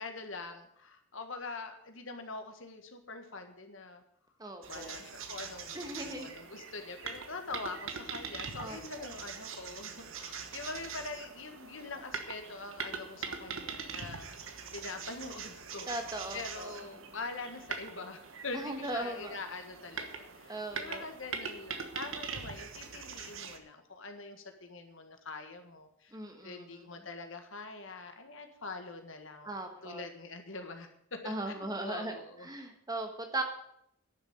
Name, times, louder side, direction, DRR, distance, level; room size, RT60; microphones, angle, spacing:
voice 1, 0.0-4.0 4.7-14.4 14.7-26.2 26.4-32.5, left 3 dB, 60° left, 6 dB, 1.7 m, -44 dB
voice 2, 4.4-4.9 5.7-6.3 8.6-9.1 15.9-16.7 18.5-19.4 20.5-21.0 26.1-26.9 29.4-30.1 31.2-32.2 32.4-33.4, right 2 dB, 15° right, 5 dB, 1.4 m, -38 dB
sound 1, 4.6-23.6, right 5 dB, 65° right, 1.3 m, -43 dB
11.0 x 7.1 x 9.0 m, 0.72 s
head